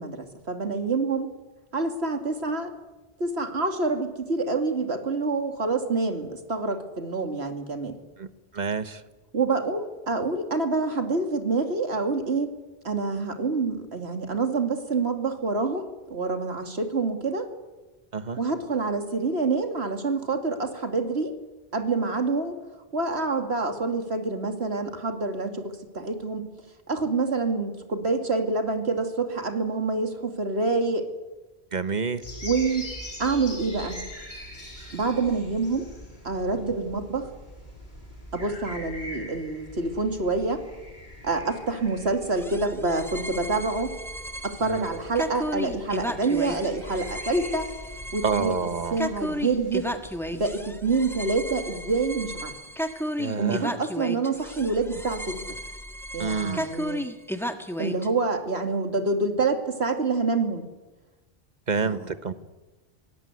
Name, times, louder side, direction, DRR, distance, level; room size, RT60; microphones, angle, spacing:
voice 1, 0.0-1.3 1.7-2.7 3.2-8.0 9.3-12.5 12.8-17.5 18.4-21.3 21.7-22.6 22.9-26.5 26.9-31.1 32.4-32.9 33.2-34.0 34.9-35.9 36.2-37.3 38.3-40.6 41.2-44.0 44.4-47.7 48.1-48.6 48.9-49.9 50.3-52.6 53.4-55.4 56.1-57.0 57.8-60.6 61.8-62.0, right 3 dB, 90° right, 6 dB, 2.6 m, -27 dB
voice 2, 8.5-9.0 18.1-18.4 31.7-32.2 36.6-36.7 44.6-44.9 48.2-49.0 53.2-53.6 56.2-56.6 61.7-62.3, right 5 dB, 45° right, 12 dB, 1.2 m, -28 dB
sound 1, 32.2-50.6, equal, 50° left, 6.2 m, -43 dB
sound 2, 42.3-58.1, equal, ahead, 1.4 m, -34 dB
22.5 x 18.5 x 9.6 m, 1.1 s
omnidirectional pair, 1.0 m